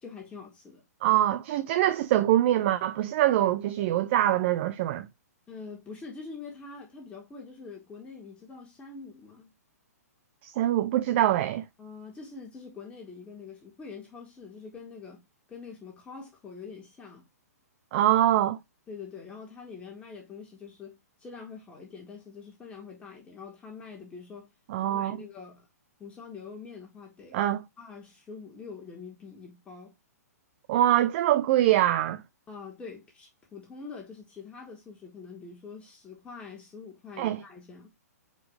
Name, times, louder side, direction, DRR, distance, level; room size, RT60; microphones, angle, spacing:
voice 1, 0.0-0.8 5.5-9.5 11.8-15.2 15.5-17.3 18.9-24.5 24.8-25.7 26.0-27.4 27.8-29.9 32.5-37.9, left 5 dB, 15° left, 1.9 m, -45 dB
voice 2, 1.0-5.1 10.4-11.6 17.9-18.6 24.7-25.2 27.3-27.6 30.7-32.2 37.2-37.4, right 13 dB, 45° right, 0.5 m, -24 dB
4.9 x 4.0 x 5.0 m
hypercardioid pair, 145°, 9 cm